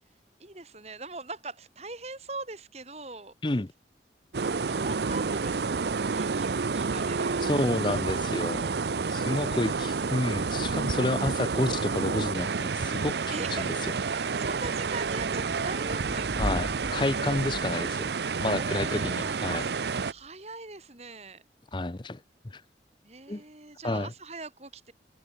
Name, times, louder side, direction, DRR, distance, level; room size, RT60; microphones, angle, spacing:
voice 1, 0.4-3.3 4.4-7.7 13.3-13.8 14.1-16.8 18.6-21.4 23.0-24.9, right 3 dB, 35° right, 2.8 m, -42 dB
sound 1, 4.3-20.1, right 4 dB, 70° right, 0.6 m, -29 dB
voice 2, 7.4-8.8 9.1-13.2 13.5-13.7 16.4-19.6 21.7-22.2 22.4-22.6 23.3-23.4 23.8-24.1, left 2 dB, 25° left, 0.7 m, -30 dB
Thunder / Rain, 13.9-20.3, equal, 10° right, 2.0 m, -41 dB
open air
head